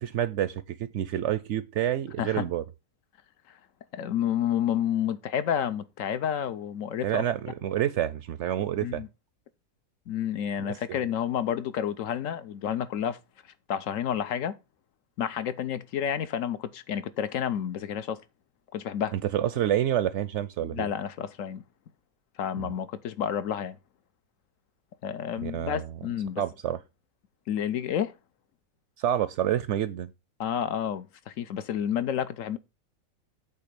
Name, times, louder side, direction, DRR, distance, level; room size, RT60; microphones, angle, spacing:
voice 1, 0.0-2.6 7.0-9.0 10.6-11.0 19.1-20.9 22.6-22.7 25.4-25.9 26.4-26.8 29.0-30.1, right 11 dB, 65° right, 0.7 m, -28 dB
voice 2, 3.9-7.2 8.8-9.1 10.1-13.2 13.7-14.6 15.2-18.2 18.7-19.1 20.6-21.6 22.4-23.8 25.0-26.4 27.5-28.1 30.4-32.6, left 9 dB, 70° left, 1.0 m, -30 dB
8.5 x 3.4 x 6.5 m
omnidirectional pair, 1.5 m